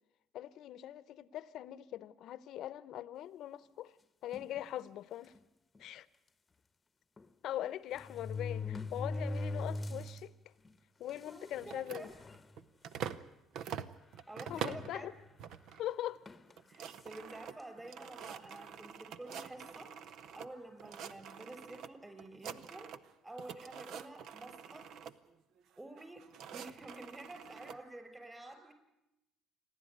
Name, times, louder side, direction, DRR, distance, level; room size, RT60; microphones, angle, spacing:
voice 1, 0.3-4.0 4.2-5.3 5.8-6.1 7.4-10.3 11.0-12.1 14.5-15.1 15.8-16.2, left 12 dB, 65° left, 0.8 m, -41 dB
sound 1, 4.3-4.6 5.4-5.5 5.8-5.9 7.2-7.3 7.9-10.2 10.7-10.8 11.6-11.7 12.0-12.4 13.0-13.2 14.5-15.3 16.3-16.5, left 3 dB, 25° left, 1.0 m, -40 dB
voice 2, 11.3-12.1 14.3-15.1 16.7-19.9 20.3-22.9 23.2-24.9 25.8-26.2 26.5-28.7, right 2 dB, 15° right, 5.8 m, -49 dB
sound 2, 11.6-13.3 13.5-14.9 15.4-15.8 16.2-16.3 16.5-20.5 20.8-21.9 22.2-23.1 23.4-25.1 25.9-27.8, right 8 dB, 65° right, 0.9 m, -45 dB
29.0 x 11.5 x 9.5 m
supercardioid pair, 85°, 0 cm